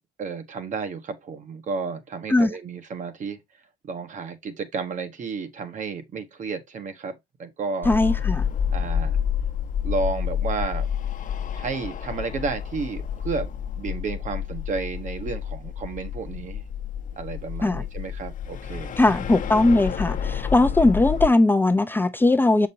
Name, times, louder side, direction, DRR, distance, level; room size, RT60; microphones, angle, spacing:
voice 1, 0.2-3.4 3.8-7.9 8.7-9.2 9.8-10.9 11.5-13.5 13.7-16.6 17.2-19.0 20.8-20.9, right 4 dB, 45° right, 1.2 m, -32 dB
sound 1, 7.8-21.3, left 8 dB, 50° left, 0.9 m, -29 dB
voice 2, 7.9-8.4 17.6-17.8 19.0-22.7, left 2 dB, 10° left, 0.6 m, -19 dB
6.6 x 5.2 x 2.8 m
cardioid pair, 110°, 17 cm